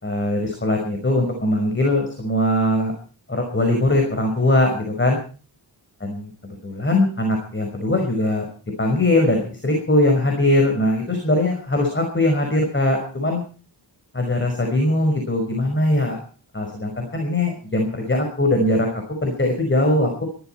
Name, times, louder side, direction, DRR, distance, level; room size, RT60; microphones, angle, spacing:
voice 1, 0.0-2.9 3.3-5.2 6.0-6.3 6.6-8.5 8.8-13.4 14.1-16.2 16.5-20.2, left 1 dB, 25° left, 3 dB, 5.3 m, -21 dB
22.5 x 14.0 x 4.6 m, 0.41 s
wide cardioid pair, 105°, 47 cm